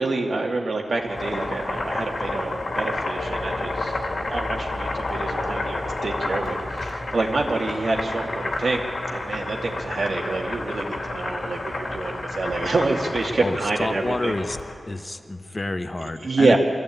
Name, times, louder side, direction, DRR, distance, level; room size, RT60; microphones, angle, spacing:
voice 1, 0.0-14.3 16.0-16.6, right 3 dB, 70° right, -1 dB, 2.6 m, -27 dB
Boiling, 0.9-14.7, left 2 dB, 60° left, 2.7 m, -30 dB
sound 1, 3.2-7.8, left 2 dB, 90° left, 2.8 m, -36 dB
voice 2, 13.4-14.6 14.9-16.6, left 2 dB, 25° left, 9 dB, 1.0 m, -28 dB
23.5 x 14.5 x 8.7 m, 2.3 s
wide cardioid pair, 110°, 0 cm